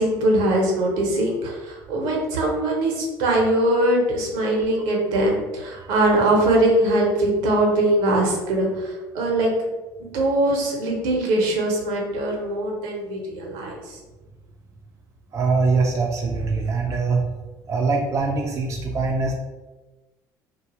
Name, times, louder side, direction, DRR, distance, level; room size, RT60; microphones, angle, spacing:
voice 1, 0.0-9.5 10.0-14.0, right 1 dB, 75° right, 0 dB, 0.7 m, -22 dB
voice 2, 15.3-17.2 17.7-19.3, right 4 dB, 35° right, 1 dB, 0.4 m, -23 dB
2.4 x 2.2 x 2.8 m, 1.2 s
supercardioid pair, 80°, 9 cm